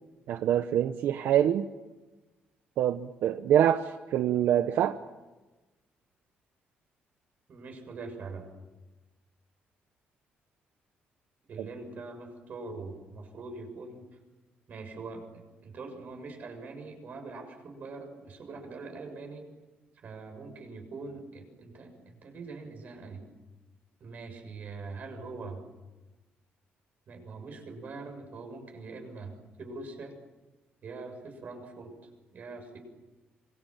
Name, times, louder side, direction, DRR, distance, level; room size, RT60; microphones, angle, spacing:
voice 1, 0.3-1.6 2.8-5.0, right 10 dB, 80° right, 9 dB, 1.0 m, -25 dB
voice 2, 7.5-8.5 11.5-14.1 14.7-15.3 15.6-19.5 20.0-23.2 24.0-25.6 27.1-30.2 30.8-32.0 32.3-32.8, right 3 dB, 50° right, 5 dB, 7.0 m, -43 dB
26.5 x 24.5 x 7.6 m, 1.1 s
cardioid pair, 150°, 4 cm